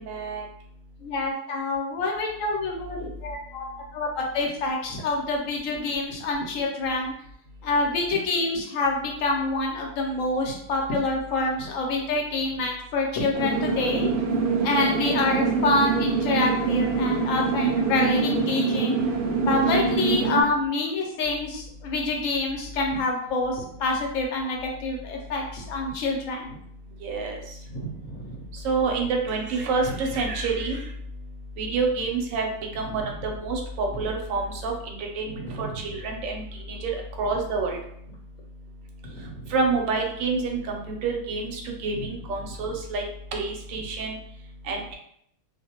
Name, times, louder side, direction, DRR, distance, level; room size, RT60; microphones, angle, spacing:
voice 1, 0.1-0.4 14.7-14.9 19.6-19.7 27.0-27.4 28.6-30.8 31.6-32.5 32.7-36.4 36.7-36.9 37.2-37.8 39.5-43.0 43.3-44.2 44.7-44.9, right 4 dB, 70° right, 1 dB, 0.9 m, -28 dB
voice 2, 1.0-3.6 3.9-7.1 7.6-14.1 14.6-19.0 19.4-26.6 27.7-28.4 35.3-35.7 39.0-39.5, left 2 dB, 65° left, 0 dB, 0.9 m, -27 dB
sound 1, 13.3-20.4, right 4 dB, 85° right, 0.5 m, -24 dB
2.4 x 2.2 x 2.8 m, 0.70 s
omnidirectional pair, 1.6 m